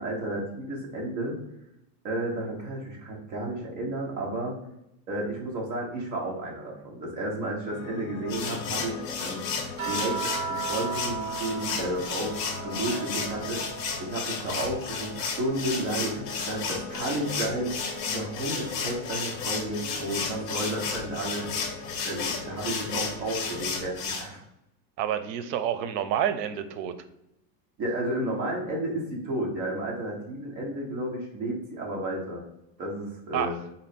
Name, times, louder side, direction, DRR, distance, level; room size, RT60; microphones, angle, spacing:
voice 1, 0.0-1.4 2.0-4.6 5.1-9.4 9.9-13.7 14.0-21.4 22.0-24.4 27.8-32.4 32.8-33.5, right 1 dB, 20° right, -2 dB, 0.6 m, -32 dB
Piano, 7.7-23.8, left 4 dB, 70° left, 0.7 m, -42 dB
sound 1, 8.3-24.2, left 5 dB, 55° left, 1.0 m, -33 dB
sound 2, 9.8-14.3 14.6-16.3 17.8-17.9, right 5 dB, 40° right, 1.1 m, -37 dB
voice 2, 25.0-27.0 33.3-33.6, right 9 dB, 85° right, 10 dB, 0.6 m, -28 dB
3.9 x 2.0 x 4.0 m, 0.84 s
supercardioid pair, 170°, 48 cm